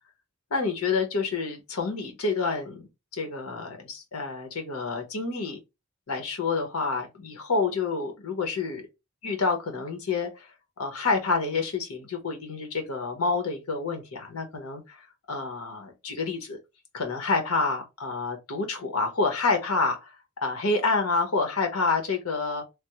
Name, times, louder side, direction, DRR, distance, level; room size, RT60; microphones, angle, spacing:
voice 1, 0.5-5.6 6.1-8.8 9.2-10.5 10.8-16.6 16.9-20.1 20.4-22.6, left 4 dB, 85° left, 0.9 m, -28 dB
3.3 x 2.1 x 2.9 m
head